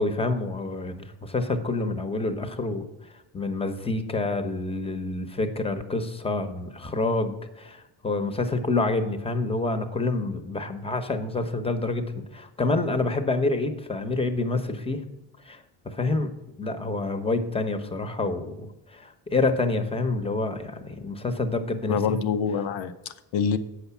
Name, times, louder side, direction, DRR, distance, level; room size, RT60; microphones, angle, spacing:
voice 1, 0.0-2.8 3.3-15.0 15.4-16.3 16.6-22.2, left 3 dB, 15° left, 8 dB, 0.9 m, -27 dB
voice 2, 21.9-23.6, left 6 dB, 85° left, 11 dB, 0.7 m, -26 dB
7.9 x 5.8 x 7.0 m, 0.98 s
cardioid pair, 100°, 45 cm